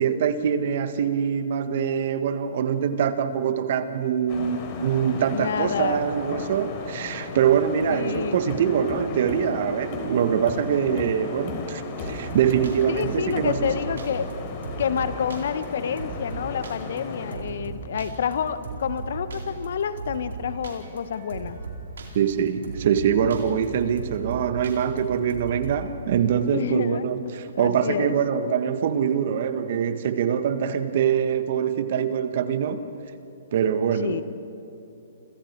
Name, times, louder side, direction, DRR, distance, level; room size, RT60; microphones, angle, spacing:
voice 1, 0.0-13.6 22.1-32.8 33.5-34.2, right 8 dB, 55° right, 1.7 m, -24 dB
sound 1, 4.3-17.4, left 3 dB, 40° left, 3.8 m, -35 dB
voice 2, 5.3-6.0 7.9-8.4 12.9-14.3 14.8-21.6 26.5-28.1 34.0-34.2, left 7 dB, 65° left, 1.3 m, -28 dB
sound 2, 12.0-25.9, right 4 dB, 75° right, 4.4 m, -37 dB
30.0 x 27.0 x 4.7 m
hypercardioid pair, 130°, 0 cm